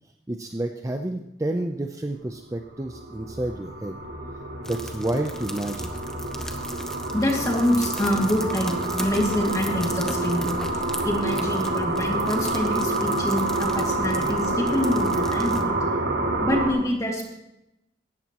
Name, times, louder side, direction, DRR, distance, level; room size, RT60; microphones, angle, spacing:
voice 1, 0.3-3.9 4.7-6.0, right 1 dB, 15° right, 4 dB, 0.6 m, -30 dB
sound 1, 2.6-16.7, right 2 dB, 65° right, 2.5 m, -27 dB
sound 2, 4.6-15.6, left 1 dB, 5° left, 1.0 m, -40 dB
voice 2, 7.1-10.6 11.0-15.8 16.4-17.3, left 1 dB, 20° left, -1 dB, 2.5 m, -26 dB
17.5 x 13.5 x 3.0 m, 0.87 s
head